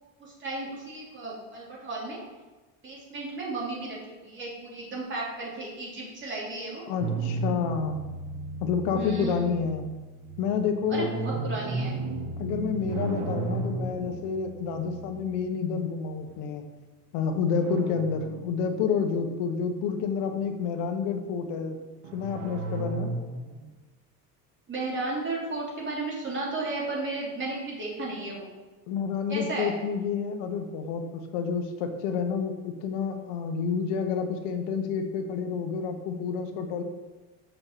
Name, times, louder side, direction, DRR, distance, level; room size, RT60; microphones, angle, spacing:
voice 1, 0.2-2.2 2.8-6.8 8.9-9.5 10.9-11.9 24.7-28.5 29.3-29.7, right 3 dB, 30° right, -4 dB, 3.1 m, -34 dB
voice 2, 6.9-8.0 8.6-9.9 10.4-11.1 12.4-16.6 17.1-21.8 22.1-23.1 28.9-36.8, left 6 dB, 75° left, 6 dB, 1.3 m, -29 dB
sound 1, 7.0-16.3 17.6-19.2 19.6-20.7 22.0-23.7, right 3 dB, 85° right, 1.5 m, -35 dB
6.8 x 5.7 x 7.5 m, 1.2 s
cardioid pair, 160°, 40 cm